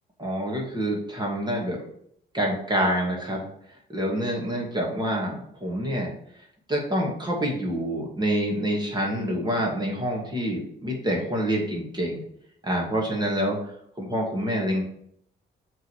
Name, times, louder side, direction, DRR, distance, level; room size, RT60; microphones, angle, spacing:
voice 1, 0.2-1.8 2.3-3.4 3.9-6.1 6.7-12.2 12.6-13.6 14.0-14.8, equal, 20° right, -2 dB, 2.3 m, -27 dB
6.6 x 3.9 x 6.4 m, 0.69 s
cardioid pair, 90°, 20 cm